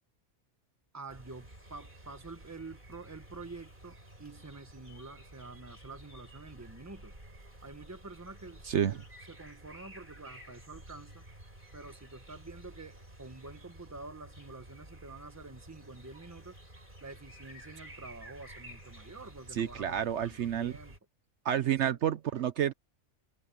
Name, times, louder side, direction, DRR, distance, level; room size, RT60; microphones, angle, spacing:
voice 1, 0.9-7.1 7.6-11.2 11.7-16.6 17.0-21.0 21.6-22.0, right 3 dB, 15° right, 1.2 m, -48 dB
sound 1, 1.1-21.0, right 1 dB, 40° right, 6.7 m, -52 dB
voice 2, 8.7-9.0 19.5-20.7 21.4-22.7, right 10 dB, 65° right, 0.9 m, -29 dB
omnidirectional pair, 1.3 m